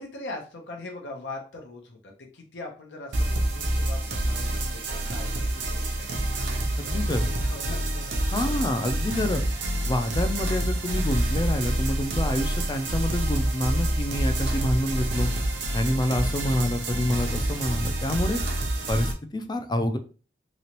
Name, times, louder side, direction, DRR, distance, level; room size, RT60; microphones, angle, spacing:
voice 1, 0.0-6.2 6.8-8.6 14.4-14.6, left 2 dB, 75° left, 1 dB, 0.7 m, -41 dB
sound 1, 3.1-19.1, right 1 dB, 75° right, 0.7 m, -27 dB
voice 2, 6.8-7.3 8.3-9.4 9.9-15.3 15.7-18.4 18.9-20.0, left 1 dB, 25° left, 8 dB, 0.4 m, -27 dB
3.0 x 2.9 x 2.9 m, 0.37 s
head